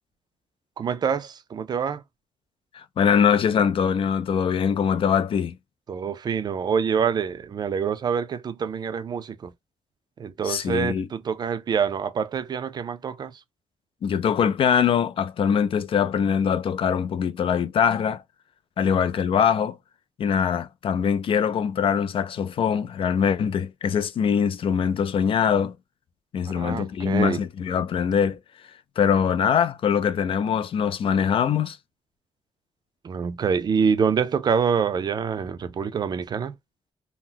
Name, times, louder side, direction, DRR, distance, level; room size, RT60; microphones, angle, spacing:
voice 1, 0.8-2.0 5.9-9.5 10.2-13.3 26.6-27.4 33.0-36.5, right 6 dB, 40° right, 0.4 m, -26 dB
voice 2, 2.7-5.5 10.4-11.1 14.0-18.2 18.8-19.8 20.2-25.8 26.3-31.8, left 7 dB, 55° left, 0.4 m, -23 dB
2.8 x 2.0 x 3.7 m
wide cardioid pair, 155°, 11 cm